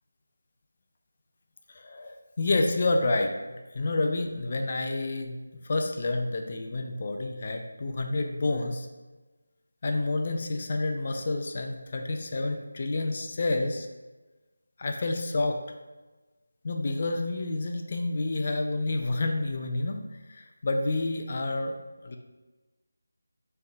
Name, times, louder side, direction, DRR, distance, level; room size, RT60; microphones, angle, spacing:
voice 1, 1.7-5.4 5.6-8.9 9.8-13.9 14.8-15.6 16.6-20.0 20.3-21.8 22.0-22.2, left 2 dB, 40° left, 4 dB, 0.4 m, -29 dB
4.2 x 3.2 x 2.4 m, 1.2 s
figure-of-eight pair, 165°, 0 cm